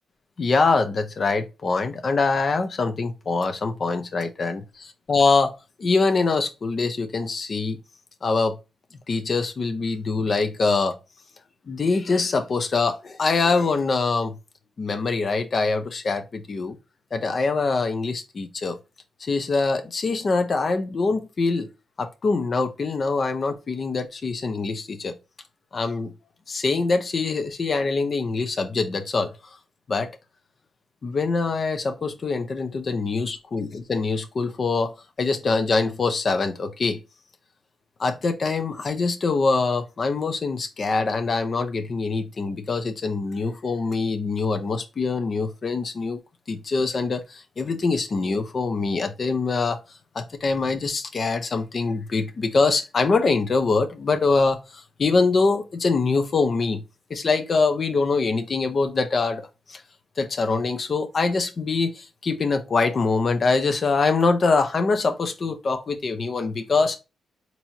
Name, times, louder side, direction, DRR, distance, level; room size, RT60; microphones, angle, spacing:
voice 1, 0.4-5.5 5.8-7.8 8.2-8.6 9.1-11.0 11.7-14.3 14.8-16.8 17.1-18.8 19.2-21.7 22.0-25.1 25.7-26.1 26.5-29.5 29.9-30.1 31.0-37.0 38.0-46.2 46.5-49.8 50.1-56.8 57.1-59.8 60.2-67.0, left 4 dB, 50° left, 0.8 m, -24 dB
4.1 x 3.0 x 2.8 m
supercardioid pair, 60°, 0 cm